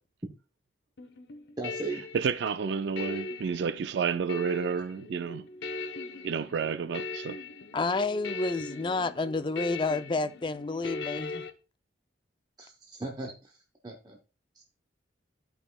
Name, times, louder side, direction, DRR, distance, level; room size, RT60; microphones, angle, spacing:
sound 1, 1.0-11.5, left 3 dB, 65° left, 0.9 m, -40 dB
voice 1, 1.6-2.0 12.6-13.6 13.8-14.2 14.6-14.7, right 2 dB, 20° right, 0.8 m, -37 dB
voice 2, 2.1-5.4 6.2-7.4, right 6 dB, 65° right, 0.3 m, -30 dB
voice 3, 7.7-11.5, left 3 dB, 25° left, 0.4 m, -30 dB
13.5 x 5.5 x 2.3 m
head